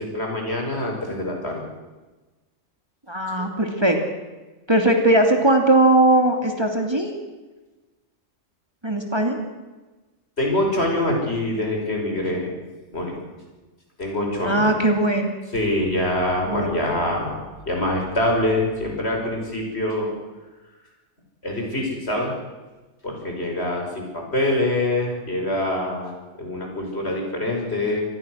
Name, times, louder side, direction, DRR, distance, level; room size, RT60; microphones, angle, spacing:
voice 1, 0.0-1.7 3.4-3.5 10.4-12.5 12.9-13.1 14.0-14.8 15.5-17.4 17.7-20.1 21.4-22.3 23.0-28.0, left 1 dB, 60° left, 1 dB, 6.1 m, -25 dB
voice 2, 3.1-4.0 4.7-7.1 8.8-9.4 14.4-15.3 16.5-16.7, right 1 dB, 20° right, 3 dB, 2.6 m, -19 dB
25.5 x 20.0 x 6.4 m, 1.2 s
omnidirectional pair, 1.3 m